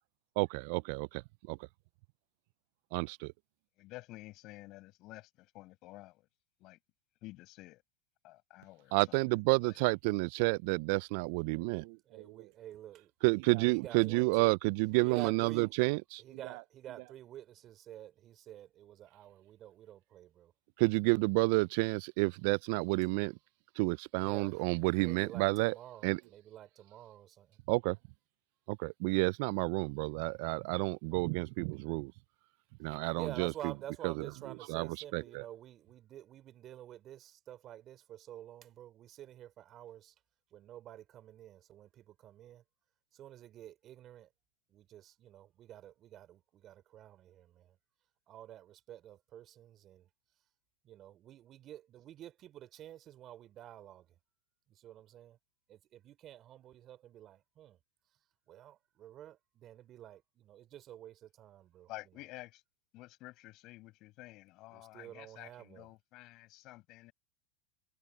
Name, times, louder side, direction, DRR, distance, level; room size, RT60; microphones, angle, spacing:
voice 1, 0.4-1.7 2.9-3.3 8.9-12.5 13.2-16.6 20.8-23.4 23.8-25.8 26.0-26.2 27.7-28.0 28.7-32.1 32.8-33.7 34.0-34.3 34.7-35.5, right 29 dB, 60° right, 0.3 m, -30 dB
voice 2, 3.8-6.3 6.6-6.8 7.2-7.8 8.2-9.0 9.6-9.8 61.9-62.6 62.9-67.1, left 19 dB, 50° left, 6.5 m, -51 dB
voice 3, 12.1-13.1 13.6-14.5 15.0-15.7 16.2-20.5 24.2-24.6 24.9-27.6 33.1-40.1 40.5-42.6 43.1-44.3 44.7-47.8 48.3-50.1 50.8-54.1 54.7-55.4 55.7-57.8 58.5-61.9 64.7-65.9, right 12 dB, 40° right, 3.8 m, -50 dB
hypercardioid pair, 95°, 0 cm